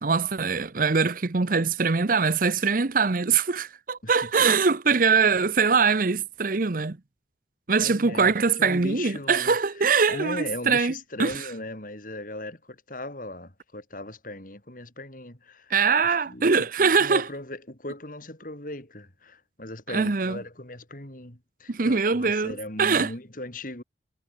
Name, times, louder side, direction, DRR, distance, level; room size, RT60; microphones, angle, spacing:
voice 1, 0.0-7.0 7.7-11.5 15.7-17.3 19.9-20.4 21.7-23.1, right 5 dB, 50° right, 0.8 m, -23 dB
voice 2, 7.8-9.5 10.1-15.7 16.3-23.8, left 1 dB, 50° left, 3.9 m, -38 dB
head